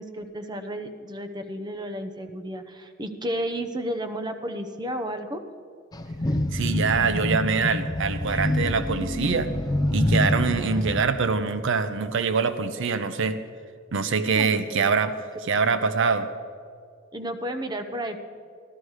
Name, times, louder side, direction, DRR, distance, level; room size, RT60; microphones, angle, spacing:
voice 1, 0.0-5.4 14.2-15.1 15.7-15.9 17.1-18.2, right 1 dB, 20° right, 8 dB, 0.7 m, -33 dB
sound 1, 5.9-11.0, left 1 dB, 20° left, 0.5 m, -26 dB
voice 2, 6.5-9.5 9.9-13.4 13.9-16.3, right 5 dB, 65° right, 11 dB, 0.6 m, -24 dB
13.5 x 13.0 x 4.8 m, 2.2 s
head